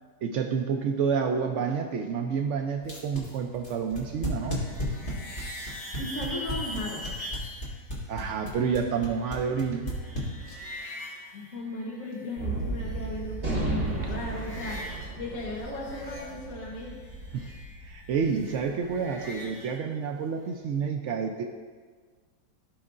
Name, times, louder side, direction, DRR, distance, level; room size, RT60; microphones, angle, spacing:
voice 1, 0.2-4.6 8.1-9.9 17.3-17.5 17.8-21.4, right 6 dB, 85° right, 3 dB, 0.6 m, -29 dB
sound 1, 2.8-10.8, equal, 30° left, 1.8 m, -34 dB
sound 2, 4.2-7.6 9.0-12.4 12.6-13.5 13.8-15.1 15.3-19.8, left 1 dB, 75° left, 3.0 m, -43 dB
voice 2, 6.0-7.1 11.3-14.8 15.2-17.0, left 2 dB, 55° left, -4 dB, 1.4 m, -36 dB
Gunshot gunfire, 12.4-18.9, right 2 dB, 60° right, 2.9 m, -34 dB
16.0 x 5.3 x 2.5 m, 1.5 s
omnidirectional pair, 1.8 m